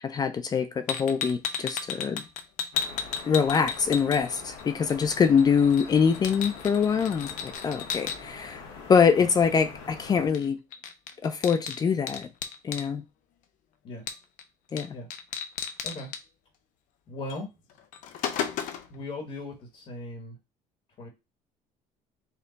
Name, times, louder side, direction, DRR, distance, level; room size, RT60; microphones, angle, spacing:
voice 1, 0.0-2.2 3.3-8.6 8.9-10.6 11.2-12.3 12.6-13.0 14.7-15.0, left 6 dB, 30° left, 0.4 m, -24 dB
sound 1, 0.9-4.6 4.9-8.2 10.3-10.5 10.7-12.9 14.1-14.4 14.8-14.9 15.1-16.2 17.3-17.4 17.8-19.0, left 7 dB, 65° left, 0.7 m, -34 dB
sound 2, 2.7-10.3, left 5 dB, 85° left, 1.1 m, -44 dB
voice 2, 17.1-17.5 18.9-20.4 21.0-21.1, left 2 dB, 45° left, 1.3 m, -38 dB
4.4 x 2.3 x 3.9 m
cardioid pair, 130°, 14 cm